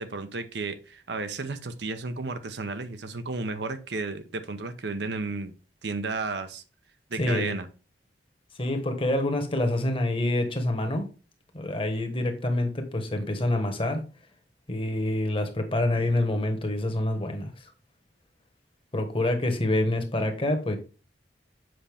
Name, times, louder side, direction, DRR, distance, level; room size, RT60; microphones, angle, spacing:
voice 1, 0.0-5.5 5.8-6.6 7.1-7.7, right 3 dB, 65° right, 0.8 m, -33 dB
voice 2, 7.2-7.5 8.6-11.1 11.5-14.0 14.7-17.5 18.9-20.8, left 1 dB, 30° left, 1.4 m, -26 dB
7.8 x 5.5 x 3.5 m
head